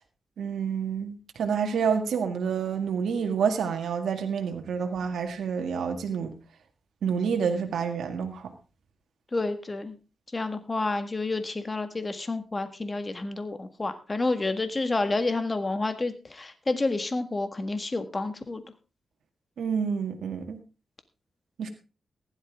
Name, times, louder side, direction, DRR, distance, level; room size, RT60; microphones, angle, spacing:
voice 1, 0.4-6.3 7.0-8.5 19.6-20.6 21.6-21.7, right 6 dB, 85° right, 4 dB, 1.8 m, -28 dB
voice 2, 9.3-9.9 10.3-18.6, left 2 dB, 30° left, 9 dB, 1.7 m, -29 dB
15.5 x 11.5 x 3.6 m, 0.32 s
cardioid pair, 85°, 0 cm